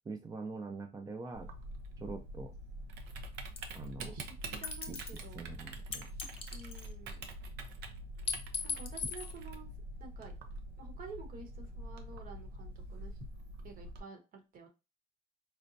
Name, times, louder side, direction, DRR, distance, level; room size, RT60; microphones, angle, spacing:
voice 1, 0.1-1.5 2.0-2.5 3.7-4.1 4.9-6.1, right 4 dB, 20° right, 5 dB, 0.4 m, -44 dB
Typing, 1.3-14.0, right 1 dB, 80° right, 0.6 m, -45 dB
sound 1, 3.6-3.9 4.6-5.3 5.9-7.2 8.3-9.3, left 6 dB, 35° left, 0.7 m, -39 dB
voice 2, 4.0-5.4 6.5-7.2 8.6-9.7 10.0-10.3 10.8-13.2 13.6-14.7, right 4 dB, 55° right, 4 dB, 1.1 m, -50 dB
4.3 x 2.1 x 2.6 m, 0.27 s
cardioid pair, 110°, 17 cm